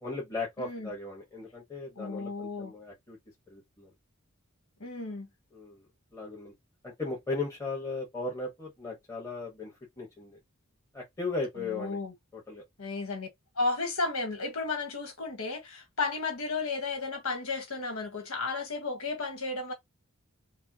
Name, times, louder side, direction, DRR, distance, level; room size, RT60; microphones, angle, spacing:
voice 1, 0.0-3.2 3.5-3.9 5.5-5.8 6.1-6.5 6.8-10.4 10.9-12.0 12.3-12.6, left 3 dB, 15° left, 1.3 m, -37 dB
voice 2, 0.6-0.9 2.0-2.7 4.8-5.3 11.6-12.1 12.8-13.3 13.5-19.7, left 3 dB, 75° left, 1.4 m, -33 dB
5.4 x 2.1 x 2.8 m
head